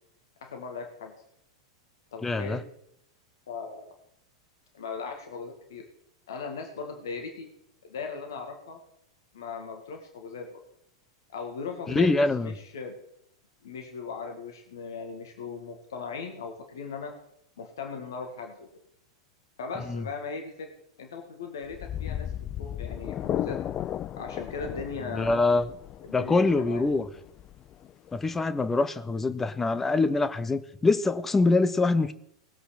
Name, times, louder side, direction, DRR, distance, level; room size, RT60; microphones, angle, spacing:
voice 1, 0.4-1.1 2.1-2.6 3.5-3.9 4.7-5.9 6.3-7.5 7.8-8.8 9.3-10.6 11.3-12.9 13.6-17.1 17.6-18.7 19.6-20.7 21.0-23.6 24.2-25.5 26.0-27.0, left 5 dB, 60° left, 3 dB, 2.0 m, -38 dB
voice 2, 2.2-2.6 11.9-12.5 19.9-20.0 25.1-25.7 26.1-27.1 28.1-32.1, left 3 dB, 10° left, 12 dB, 0.8 m, -24 dB
sound 1, 21.6-28.5, left 11 dB, 30° left, 0.4 m, -35 dB
20.0 x 7.9 x 4.2 m, 0.74 s
figure-of-eight pair, 90°, 2 cm